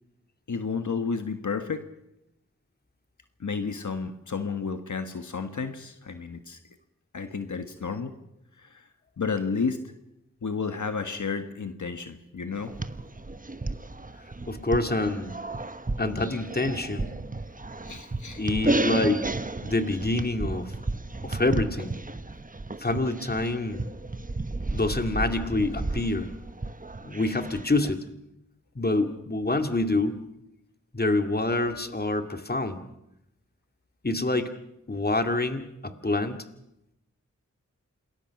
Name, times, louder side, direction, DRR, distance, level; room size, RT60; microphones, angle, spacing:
voice 1, 0.5-1.9 3.4-6.6 7.1-8.2 8.6-8.9 9.2-9.8 10.4-12.7 17.8-18.4, left 5 dB, 70° left, 8 dB, 1.5 m, -31 dB
sound 1, 12.5-27.9, right 2 dB, 25° right, 1.1 m, -33 dB
voice 2, 14.5-15.3 16.0-17.2 18.4-19.3 19.6-20.7 21.2-22.0 22.8-23.8 24.7-26.3 27.0-28.0 28.8-30.2 30.9-32.8 34.0-34.5 34.9-36.4, left 2 dB, 30° left, 7 dB, 2.2 m, -26 dB
27.5 x 20.5 x 5.9 m, 0.85 s
cardioid pair, 50°, 31 cm